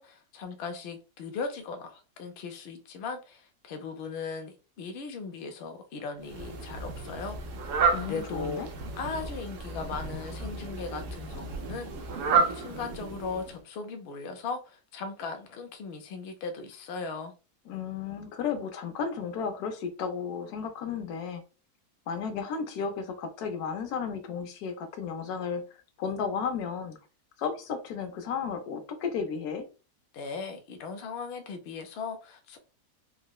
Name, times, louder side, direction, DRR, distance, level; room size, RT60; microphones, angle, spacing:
voice 1, 0.0-8.6 8.9-12.2 12.5-17.3 30.1-32.6, left 4 dB, 65° left, 0.6 m, -38 dB
Fowl, 6.2-13.6, right 4 dB, 65° right, 0.9 m, -31 dB
voice 2, 7.9-8.7 17.7-21.4 22.1-27.0 27.4-29.7, left 6 dB, 85° left, 1.2 m, -33 dB
3.9 x 2.0 x 2.3 m
omnidirectional pair, 1.6 m